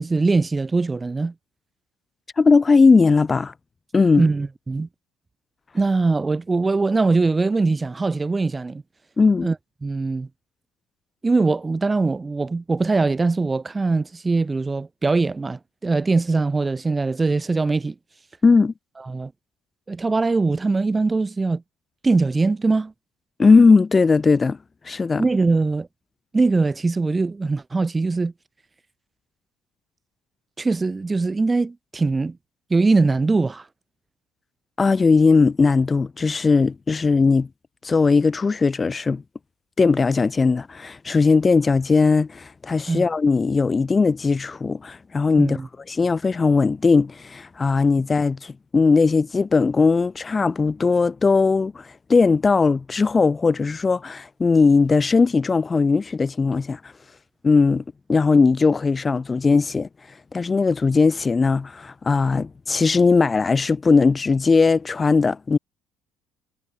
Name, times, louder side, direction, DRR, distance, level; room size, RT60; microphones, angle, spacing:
voice 1, 0.0-1.3 4.2-4.9 5.7-8.8 9.4-9.6 9.8-10.3 11.2-17.9 19.1-19.3 19.9-21.6 22.0-22.9 25.2-25.9 26.3-28.3 30.6-32.4 32.7-33.6 42.9-43.1 45.4-45.7, right 3 dB, 20° right, 2.0 m, -21 dB
voice 2, 2.4-3.5 3.9-4.2 9.2-9.5 18.4-18.7 23.4-24.6 24.8-25.3 34.8-37.5 37.8-39.2 39.8-45.6 45.9-56.8 57.4-57.8 58.1-59.9 60.3-65.6, left 4 dB, 30° left, 1.4 m, -18 dB
figure-of-eight pair, 55°, 0 cm